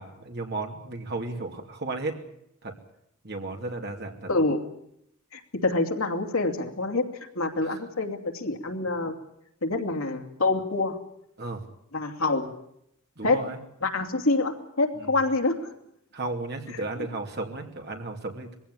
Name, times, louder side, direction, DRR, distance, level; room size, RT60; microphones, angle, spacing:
voice 1, 0.0-2.2 2.6-2.7 3.2-4.3 7.6-7.8 11.4-11.6 13.2-13.6 15.0-15.1 16.1-18.5, right 2 dB, 50° right, 3 dB, 2.8 m, -34 dB
voice 2, 4.3-4.6 5.3-7.0 7.3-9.2 9.6-11.0 11.9-12.5 13.2-13.4 13.8-15.7, left 2 dB, 70° left, 3 dB, 2.8 m, -26 dB
21.5 x 16.0 x 9.8 m, 0.76 s
head